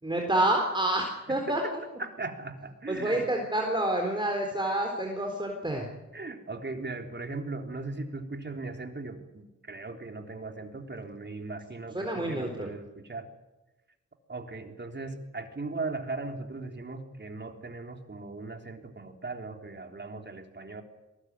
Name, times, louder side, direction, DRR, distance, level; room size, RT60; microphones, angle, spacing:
voice 1, 0.0-1.6 2.9-5.8 11.9-12.7, right 1 dB, 15° right, 2 dB, 4.1 m, -28 dB
voice 2, 1.3-1.7 2.0-3.3 6.1-13.3 14.3-20.8, right 3 dB, 35° right, 4 dB, 3.7 m, -38 dB
22.5 x 19.0 x 9.7 m, 1.1 s
cardioid pair, 75°, 32 cm